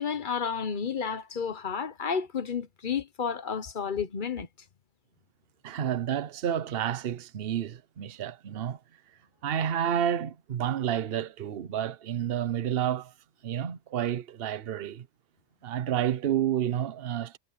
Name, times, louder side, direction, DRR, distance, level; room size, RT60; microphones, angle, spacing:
voice 1, 0.0-4.5, left 6 dB, 40° left, 0.9 m, -31 dB
voice 2, 5.6-8.8 9.4-13.1 13.4-15.1 15.6-17.4, right 10 dB, 45° right, 0.9 m, -30 dB
omnidirectional pair, 1.6 m